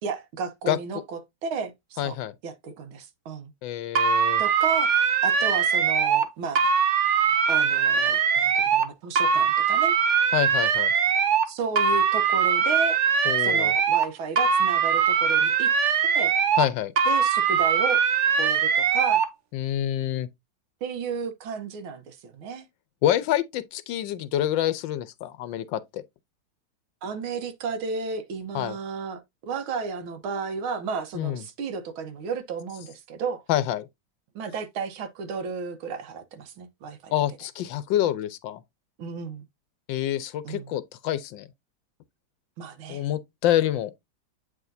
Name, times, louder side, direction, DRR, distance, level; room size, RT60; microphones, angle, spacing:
voice 1, 0.0-2.1 2.4-3.5 4.4-6.7 7.5-10.0 11.5-13.0 13.4-15.7 16.0-16.3 17.1-18.0 18.4-19.3 20.8-22.7 27.0-33.4 34.4-37.1 39.0-39.4 40.4-40.7 42.6-43.0, right 5 dB, 90° right, 1.8 m, -33 dB
voice 2, 2.0-2.3 3.6-4.4 10.3-10.9 13.3-13.7 16.6-16.9 19.5-20.3 23.0-26.0 28.5-28.8 31.1-31.4 33.5-33.9 37.1-38.6 39.9-41.5 42.9-43.9, left 12 dB, 75° left, 1.3 m, -27 dB
sound 1, 4.0-6.3 6.6-8.9 9.2-11.5 11.8-14.1 14.4-16.7 17.0-19.3, right 6 dB, 55° right, 0.8 m, -22 dB
8.2 x 4.9 x 2.6 m
omnidirectional pair, 2.2 m